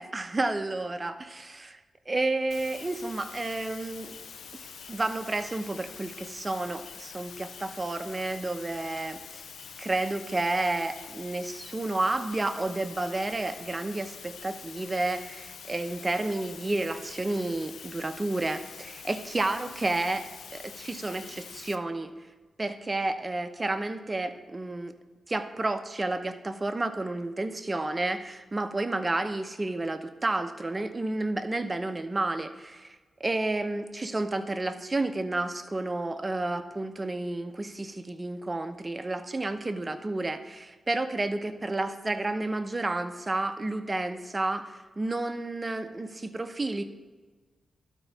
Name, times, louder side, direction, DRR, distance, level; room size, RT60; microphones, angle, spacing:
voice 1, 0.0-1.8 2.1-4.1 4.5-9.4 9.8-20.2 20.5-22.1 22.6-24.9 25.3-46.8, right 2 dB, 30° right, 8 dB, 0.8 m, -31 dB
sound 1, 2.5-21.8, left 6 dB, 80° left, 0.4 m, -45 dB
12.0 x 4.5 x 4.1 m, 1.3 s
cardioid pair, 65°, 0 cm